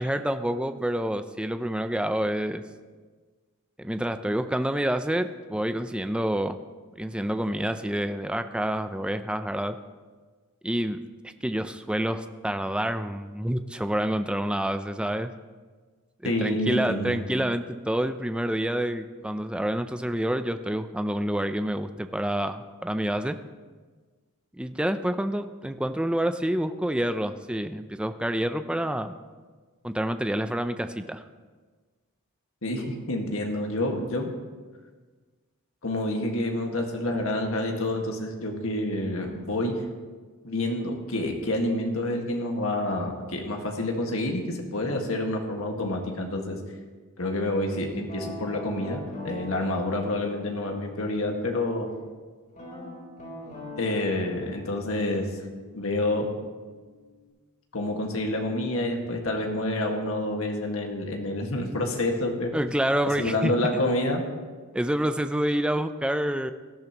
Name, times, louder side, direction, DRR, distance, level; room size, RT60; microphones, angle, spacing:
voice 1, 0.0-2.6 3.8-6.6 7.0-9.8 10.6-11.0 11.4-15.3 16.2-23.4 24.6-29.1 29.8-31.2 62.5-63.5 64.7-66.5, right 1 dB, 5° right, 9 dB, 0.4 m, -28 dB
voice 2, 16.2-17.2 32.6-34.3 35.8-39.8 40.4-46.6 47.2-51.9 53.8-55.3 55.7-56.3 57.7-62.6 63.2-64.2, left 1 dB, 70° left, 2 dB, 1.8 m, -28 dB
Guitar, 48.1-51.9 52.5-57.3, left 2 dB, 40° left, 3.6 m, -43 dB
18.5 x 12.0 x 3.0 m, 1.4 s
head